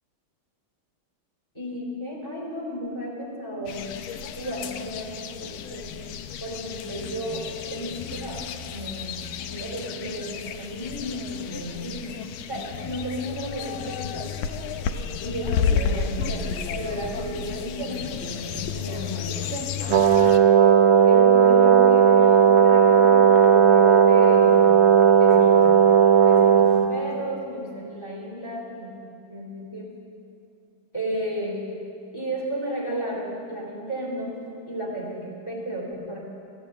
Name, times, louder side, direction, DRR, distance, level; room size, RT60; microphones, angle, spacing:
voice 1, 1.5-3.9 4.4-5.9 6.4-12.2 12.5-14.3 15.2-19.7 21.1-24.8 25.1-25.7 26.2-29.9 30.9-31.7 32.1-36.2, equal, 15° left, -4 dB, 2.6 m, -33 dB
sound 1, 3.7-20.4, left 7 dB, 80° left, 1.4 m, -32 dB
Brass instrument, 19.9-26.9, right 7 dB, 55° right, 0.7 m, -15 dB
14.5 x 8.0 x 7.6 m, 2.6 s
omnidirectional pair, 2.2 m